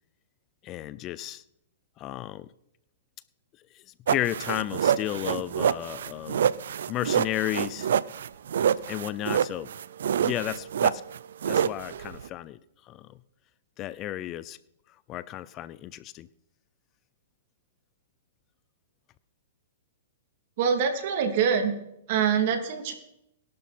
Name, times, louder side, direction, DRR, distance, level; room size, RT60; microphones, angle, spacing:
voice 1, 0.6-1.4 2.0-2.5 4.1-6.4 6.9-7.9 8.9-9.7 10.2-11.0 11.5-12.6 12.9-13.0 13.8-14.6 15.1-16.3, left 14 dB, 30° left, 17 dB, 0.5 m, -33 dB
sound 1, 4.1-12.3, right 8 dB, 75° right, 0.6 m, -26 dB
voice 2, 20.6-21.8 22.1-22.9, right 7 dB, 50° right, 5 dB, 3.0 m, -24 dB
21.5 x 12.0 x 4.5 m, 0.82 s
hypercardioid pair, 150°, 0 cm